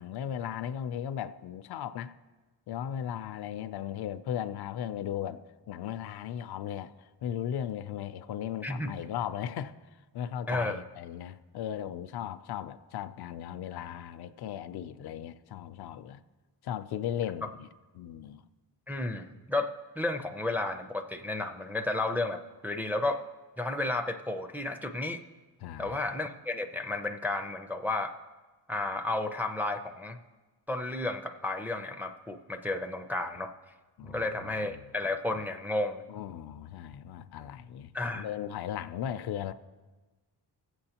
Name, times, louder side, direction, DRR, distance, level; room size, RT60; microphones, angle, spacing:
voice 1, 0.0-2.1 2.7-9.7 10.1-16.2 16.6-17.7 17.9-18.4 25.6-26.0 34.0-34.9 36.1-39.5, left 10 dB, 70° left, 0.5 m, -37 dB
voice 2, 10.5-10.8 18.9-23.2 23.6-25.2 25.8-28.1 28.7-30.2 30.7-33.5 34.0-36.0 37.9-38.3, left 2 dB, 5° right, 0.4 m, -32 dB
20.5 x 7.9 x 2.9 m
cardioid pair, 135°, 41 cm